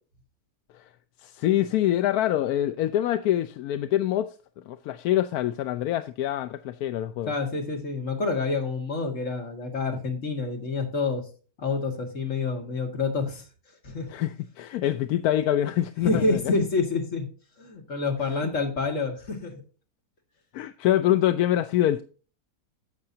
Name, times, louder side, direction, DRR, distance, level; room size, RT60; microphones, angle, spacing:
voice 1, 1.2-4.3 4.7-7.3 14.1-16.5 20.5-22.0, left 12 dB, 85° left, 1.1 m, -25 dB
voice 2, 7.3-11.2 11.6-13.4 13.8-14.1 16.0-17.3 17.6-19.6, left 3 dB, 55° left, 2.3 m, -28 dB
11.5 x 7.7 x 2.8 m
omnidirectional pair, 1.6 m